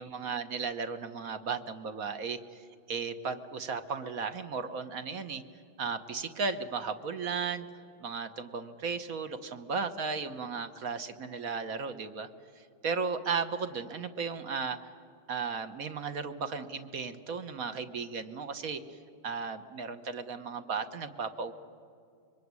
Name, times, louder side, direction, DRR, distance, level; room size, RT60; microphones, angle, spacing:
voice 1, 0.0-5.4 5.8-12.3 12.5-14.9 15.3-19.0 19.2-21.5, right 5 dB, 50° right, 10 dB, 1.4 m, -35 dB
25.0 x 23.5 x 9.6 m, 2.5 s
omnidirectional pair, 2.2 m